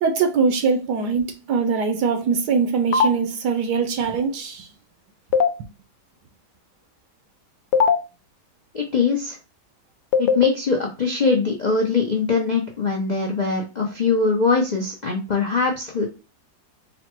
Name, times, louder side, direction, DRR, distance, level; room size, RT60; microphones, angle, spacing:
voice 1, 0.0-4.7, right 5 dB, 75° right, 1.3 m, -22 dB
sound 1, 2.9-3.1 5.3-5.5 7.7-8.0 10.1-10.5, left 6 dB, 80° left, 1.2 m, -17 dB
voice 2, 8.7-9.4 10.2-16.1, left 4 dB, 60° left, 0.4 m, -22 dB
4.0 x 2.1 x 4.4 m
omnidirectional pair, 1.8 m